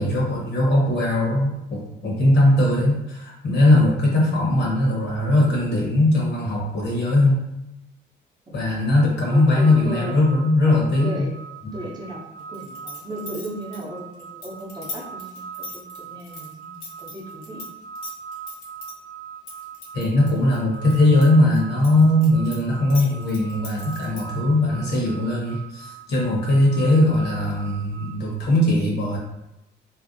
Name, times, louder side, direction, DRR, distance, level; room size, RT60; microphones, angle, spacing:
voice 1, 0.0-7.4 8.5-11.3 11.6-11.7 19.9-29.2, left 1 dB, 60° left, -3 dB, 1.0 m, -19 dB
voice 2, 8.5-10.2 10.7-11.4 11.7-12.2 12.5-17.7, right 1 dB, 20° right, -5 dB, 0.7 m, -36 dB
sound 1, 9.3-28.1, right 7 dB, 20° left, 0.3 m, -41 dB
sound 2, 12.5-17.7 17.9-18.9 19.5-21.2 21.6-24.4, left 4 dB, 80° left, 1.0 m, -38 dB
2.6 x 2.0 x 2.6 m, 0.90 s
cardioid pair, 90°, 20 cm